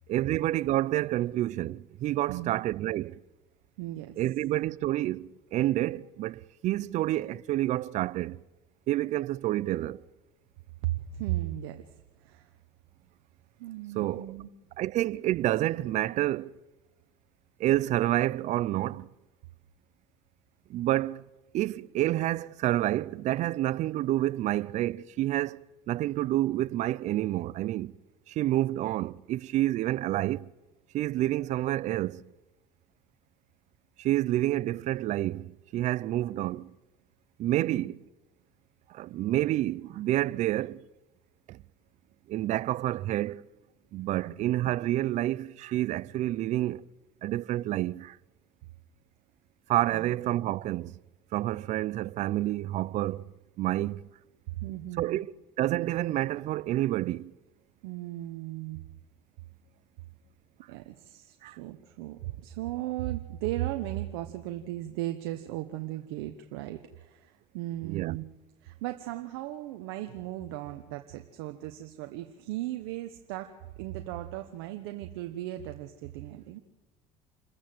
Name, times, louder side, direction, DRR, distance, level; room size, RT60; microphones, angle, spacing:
voice 1, 0.1-3.2 4.2-8.4 8.9-10.0 14.0-14.4 14.8-16.5 17.6-19.1 20.7-21.2 21.5-27.9 28.3-30.5 30.9-32.2 34.0-36.7 37.4-38.0 38.9-40.8 41.5-41.6 42.3-43.5 43.9-46.9 47.2-48.2 49.7-51.0 51.3-53.3 53.6-54.0 55.0-55.3 55.6-57.3 61.4-61.6 67.8-68.2, right 15 dB, 60° right, 0.6 m, -29 dB
voice 2, 2.3-2.6 3.8-4.2 10.8-11.9 12.2-12.5 13.6-14.5 37.6-37.8 44.2-44.3 49.9-50.2 54.6-55.2 57.8-58.8 60.7-68.2 68.6-76.6, right 15 dB, 85° right, 1.1 m, -36 dB
27.5 x 14.5 x 7.9 m
supercardioid pair, 90°, 14 cm